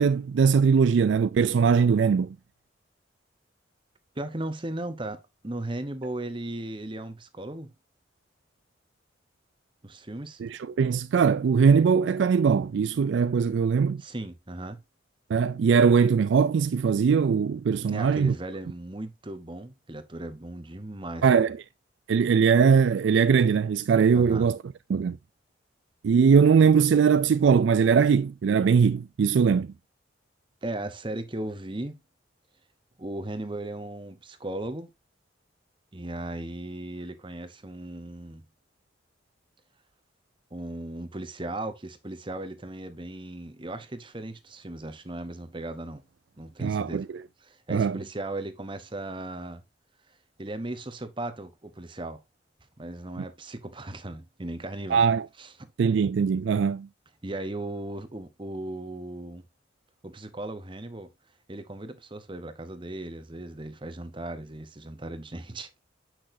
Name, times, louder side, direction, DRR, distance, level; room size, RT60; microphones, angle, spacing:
voice 1, 0.0-2.4 10.4-14.0 15.3-18.3 21.2-21.6 22.1-24.6 24.9-25.2 26.0-29.7 46.6-47.0 47.7-48.0 54.9-55.3 55.8-56.9, right 6 dB, 75° right, 0.3 m, -21 dB
voice 2, 4.2-7.7 9.8-10.4 14.0-14.8 17.9-21.5 24.1-24.5 30.6-32.0 33.0-34.9 35.9-38.4 40.5-46.0 46.4-47.0 47.4-49.6 50.4-52.2 52.8-55.0 55.4-55.7 57.2-59.4 60.0-61.1 61.5-65.8, right 1 dB, 25° right, 1.0 m, -37 dB
8.7 x 6.0 x 2.7 m
head